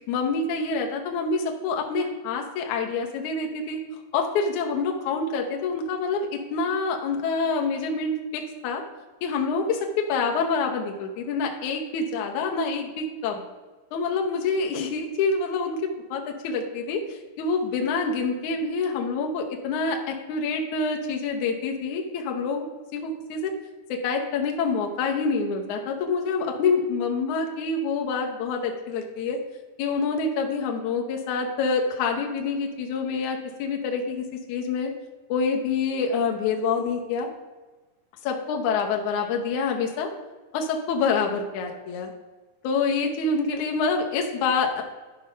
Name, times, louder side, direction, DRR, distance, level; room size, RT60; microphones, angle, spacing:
voice 1, 0.1-3.8 4.1-8.8 9.2-13.4 13.9-22.7 22.9-23.5 23.9-29.4 29.8-34.9 35.3-37.3 38.2-40.1 40.5-42.1 42.6-44.8, left 4 dB, 70° left, 2 dB, 2.2 m, -26 dB
11.5 x 5.4 x 5.0 m, 1.3 s
omnidirectional pair, 4.0 m